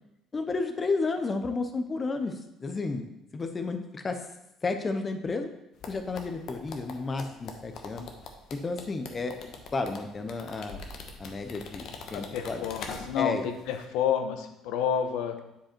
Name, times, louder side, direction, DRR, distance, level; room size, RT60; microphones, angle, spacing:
voice 1, 0.3-3.0 3.3-4.2 4.6-5.5 5.9-8.1 8.5-10.8 11.2-12.7 13.2-13.5, left 3 dB, 20° left, 6 dB, 0.6 m, -32 dB
sound 1, 5.8-13.4 13.7-13.8, left 4 dB, 50° left, 1.0 m, -43 dB
voice 2, 12.1-15.4, left 8 dB, 85° left, 7 dB, 1.0 m, -29 dB
10.0 x 5.0 x 4.4 m, 0.88 s
cardioid pair, 160°, 0 cm